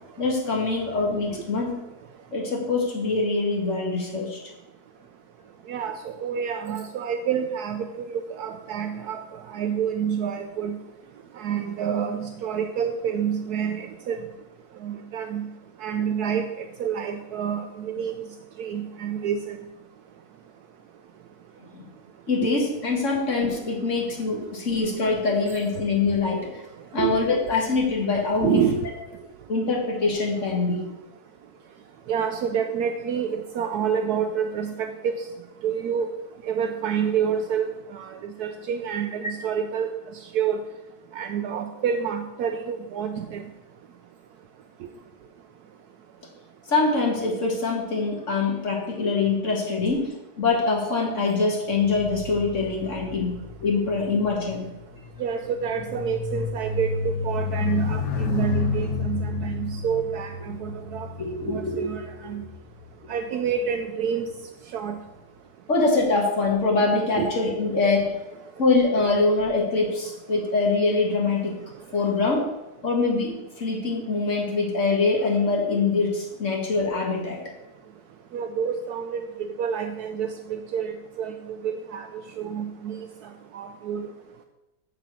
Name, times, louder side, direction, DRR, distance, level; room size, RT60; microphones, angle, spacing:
voice 1, 0.2-1.7 2.3-4.4 21.7-21.9 22.3-26.5 26.9-28.6 29.5-30.9 46.7-53.4 53.6-54.7 61.2-61.8 65.7-68.1 68.6-71.6 71.9-72.5 72.8-73.3 73.6-77.4, left 3 dB, 45° left, -1 dB, 2.0 m, -24 dB
voice 2, 5.7-9.2 9.5-10.8 11.4-14.2 14.8-15.5 15.8-18.1 18.6-19.6 27.0-27.2 28.4-28.8 32.1-35.2 35.6-36.1 36.5-39.9 40.3-40.6 41.1-43.4 55.2-61.1 61.5-62.4 63.1-64.2 64.7-65.0 67.2-67.3 78.3-82.1 82.4-83.0 83.5-84.1, right 7 dB, 75° right, 6 dB, 1.1 m, -28 dB
sound 1, 51.7-63.3 64.1-64.3, left 4 dB, 90° left, 1.6 m, -31 dB
7.3 x 6.9 x 6.1 m, 1.0 s
omnidirectional pair, 1.8 m